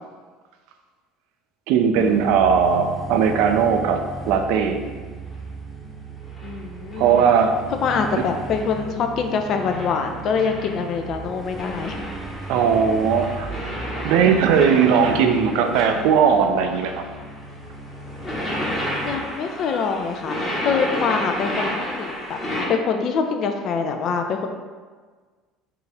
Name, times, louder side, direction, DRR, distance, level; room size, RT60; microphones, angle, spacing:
voice 1, 1.7-4.8 7.0-7.6 12.5-13.5 13.9-17.0, right 6 dB, 65° right, 5 dB, 0.4 m, -18 dB
sound 1, 1.9-19.2, right 2 dB, 5° right, 0.8 m, -36 dB
sound 2, 6.2-6.5 6.9-7.4 7.8-8.9 9.5-11.1 11.5-16.3 16.6-22.7, equal, 30° left, 1.3 m, -32 dB
voice 2, 6.4-7.3 7.8-12.0 19.0-22.4 22.7-24.5, left 5 dB, 50° left, 5 dB, 0.5 m, -25 dB
4.6 x 2.6 x 3.3 m, 1.5 s
hypercardioid pair, 65°, 0 cm